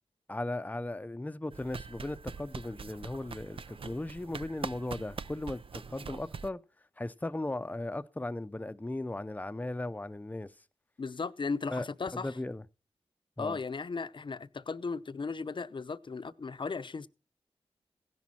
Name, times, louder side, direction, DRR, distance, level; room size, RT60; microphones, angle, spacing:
voice 1, 0.3-6.6 7.0-10.5 11.7-11.9 12.1-12.6 13.4-13.6, left 2 dB, 15° left, 0.7 m, -37 dB
sound 1, 1.5-6.5, right 5 dB, 60° right, 0.5 m, -43 dB
voice 2, 11.0-12.4 13.4-17.1, left 4 dB, 50° left, 0.7 m, -36 dB
16.0 x 10.5 x 4.3 m
wide cardioid pair, 65°, 11 cm